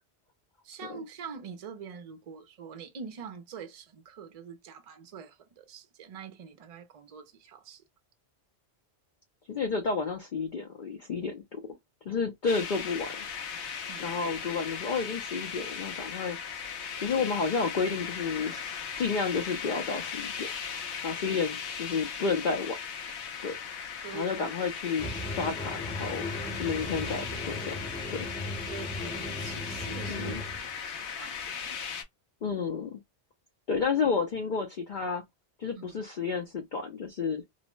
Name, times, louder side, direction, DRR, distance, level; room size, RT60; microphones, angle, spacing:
voice 1, 0.6-7.8 13.9-14.5 21.2-21.4 21.9-22.1 24.0-24.5 28.7-30.4 30.7-31.8 35.8-36.0, right 6 dB, 45° right, 0.5 m, -45 dB
voice 2, 9.5-11.6 12.1-13.3 14.0-16.4 17.0-20.5 21.0-22.8 23.4-23.5 24.1-26.3 26.6-28.3 30.1-30.4 32.4-33.0 33.7-35.2 35.6-37.4, left 5 dB, 55° left, 0.6 m, -31 dB
sound 1, 12.5-32.0, left 7 dB, 80° left, 1.0 m, -38 dB
sound 2, 25.0-30.6, left 1 dB, 10° left, 0.4 m, -37 dB
2.7 x 2.1 x 3.0 m
omnidirectional pair, 1.1 m